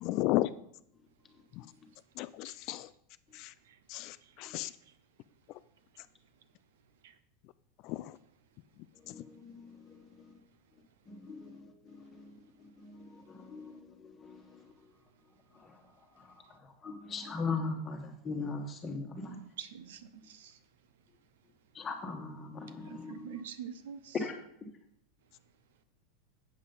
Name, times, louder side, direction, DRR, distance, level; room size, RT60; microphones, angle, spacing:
voice 1, 0.0-0.5 2.2-2.9 3.9-4.1 4.4-4.7 7.9-8.0, left 17 dB, 45° left, 0.3 m, -32 dB
voice 2, 9.0-10.3 11.1-14.9 15.5-15.8 16.2-19.4 21.7-23.4 24.1-24.7, left 4 dB, 20° left, 1.4 m, -40 dB
voice 3, 19.3-20.0 20.3-20.5 22.9-24.1, right 8 dB, 90° right, 0.9 m, -44 dB
8.4 x 7.4 x 5.5 m
supercardioid pair, 160°, 0 cm